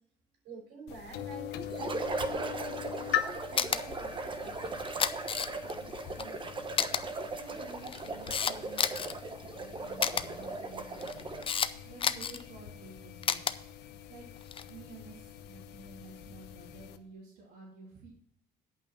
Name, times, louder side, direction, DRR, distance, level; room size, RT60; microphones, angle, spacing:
voice 1, 0.4-4.6 6.0-6.1, right 4 dB, 90° right, -1 dB, 5.1 m, -47 dB
sound 1, 0.9-17.0, left 11 dB, 90° left, 0.8 m, -42 dB
sound 2, 1.7-11.6, right 3 dB, 30° right, 1.0 m, -38 dB
Camera, 3.6-3.8 4.8-5.7 6.2-6.3 6.8-7.0 7.7-9.1 10.0-10.2 11.0-11.7 12.0-12.4 13.2-13.5 14.4-14.7, left 7 dB, 30° left, 0.5 m, -30 dB
voice 2, 5.7-6.6 7.3-9.3 9.6-11.4 11.9-13.5 13.8-14.3 14.7-18.1, right 3 dB, 75° right, -5 dB, 2.9 m, -52 dB
9.2 x 5.6 x 7.2 m, 0.70 s
cardioid pair, 110°, 17 cm